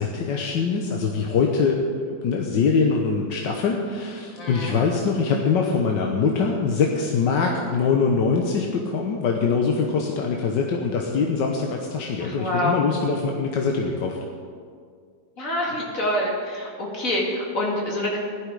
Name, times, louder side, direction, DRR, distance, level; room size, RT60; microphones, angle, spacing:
voice 1, 0.0-14.2, left 5 dB, 90° left, 1 dB, 1.6 m, -23 dB
voice 2, 4.4-4.8 12.2-12.8 15.4-18.2, left 1 dB, 50° left, -3 dB, 2.9 m, -26 dB
15.5 x 11.5 x 4.8 m, 2.2 s
omnidirectional pair, 1.9 m